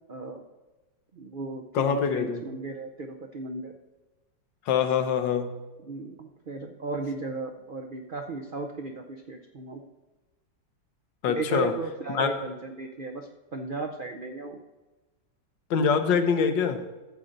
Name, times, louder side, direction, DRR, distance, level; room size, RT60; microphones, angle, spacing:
voice 1, 0.1-0.4 1.1-3.7 5.8-9.8 11.3-14.6, right 3 dB, 85° right, 4 dB, 0.4 m, -35 dB
voice 2, 1.7-2.4 4.7-5.6 11.2-11.7 12.1-12.3 15.7-16.8, left 6 dB, 80° left, 7 dB, 1.6 m, -24 dB
13.5 x 7.7 x 3.9 m, 1.2 s
omnidirectional pair, 2.0 m